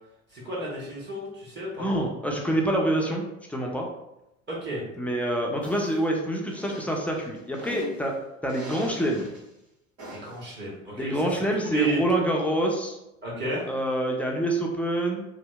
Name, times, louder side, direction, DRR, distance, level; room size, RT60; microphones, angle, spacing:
voice 1, 0.3-1.9 4.5-4.8 10.1-12.0 13.2-13.7, right 2 dB, 30° right, -5 dB, 1.0 m, -32 dB
voice 2, 1.8-3.9 5.0-8.2 8.4-9.3 11.0-13.0 13.7-15.2, right 1 dB, 5° left, 0 dB, 0.3 m, -26 dB
sound 1, 5.6-6.0 6.5-8.0 8.5-9.4 10.0-10.4, equal, 80° right, 1.2 m, -42 dB
2.6 x 2.1 x 2.3 m, 0.89 s
hypercardioid pair, 70°, 38 cm